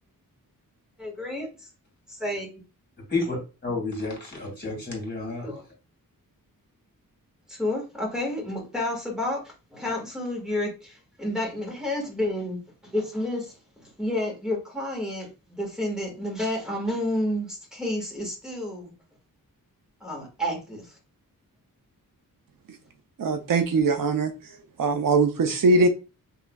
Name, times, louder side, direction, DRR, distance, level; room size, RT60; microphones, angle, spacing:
voice 1, 1.0-1.7 2.1-2.5 4.7-4.8 5.4-5.6 7.5-9.4 9.7-13.5 14.0-18.9 20.0-20.9, left 1 dB, ahead, -1 dB, 1.8 m, -30 dB
voice 2, 3.1-5.5, left 3 dB, 30° left, -2 dB, 2.3 m, -30 dB
voice 3, 23.2-25.9, right 3 dB, 70° right, 7 dB, 0.6 m, -22 dB
5.8 x 3.1 x 2.3 m, 0.30 s
wide cardioid pair, 140°, 35 cm